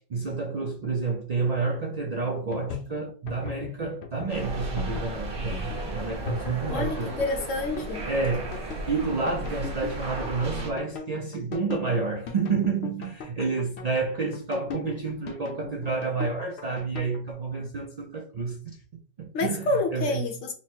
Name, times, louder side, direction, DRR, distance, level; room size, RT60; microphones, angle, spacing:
voice 1, 0.0-7.2 8.1-18.8 19.2-20.3, right 4 dB, 80° right, 0.3 m, -30 dB
sound 1, 2.3-17.2, left 6 dB, 60° left, 0.9 m, -38 dB
sound 2, 4.3-10.7, right 2 dB, 45° right, 1.2 m, -34 dB
voice 2, 6.6-8.0 19.3-20.5, left 2 dB, 75° left, 1.2 m, -28 dB
4.1 x 2.1 x 4.4 m
omnidirectional pair, 1.3 m